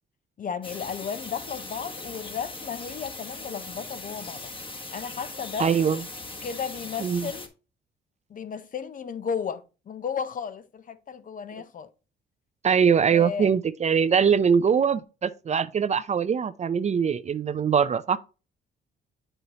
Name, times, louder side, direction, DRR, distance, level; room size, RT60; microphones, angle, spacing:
voice 1, 0.4-4.5 4.9-5.7 6.4-7.5 8.3-11.9 13.1-13.5, left 7 dB, 45° left, 0.6 m, -34 dB
sound 1, 0.6-7.5, left 2 dB, 25° left, 1.3 m, -39 dB
voice 2, 5.6-6.0 7.0-7.3 12.6-18.2, right 7 dB, 35° right, 0.4 m, -22 dB
7.9 x 5.5 x 2.8 m
cardioid pair, 90°, 20 cm